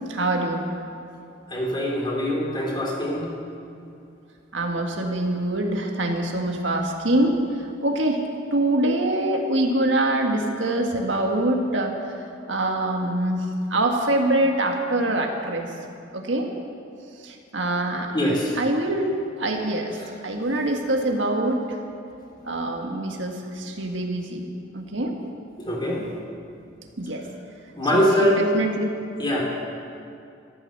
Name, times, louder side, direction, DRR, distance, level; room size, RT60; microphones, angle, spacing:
voice 1, 0.1-0.6 4.5-7.4 7.8-8.2 8.5-12.1 12.5-15.7 16.1-16.5 17.2-18.1 18.5-20.0 20.2-21.6 22.4-24.5 24.7-25.1 27.0-27.3 27.9-28.9, right 1 dB, 80° right, 2 dB, 1.7 m, -24 dB
voice 2, 1.5-3.3 18.1-18.5 25.6-26.0 27.7-28.3 29.2-29.4, equal, 25° left, -3 dB, 3.4 m, -23 dB
14.0 x 13.5 x 6.7 m, 2.5 s
head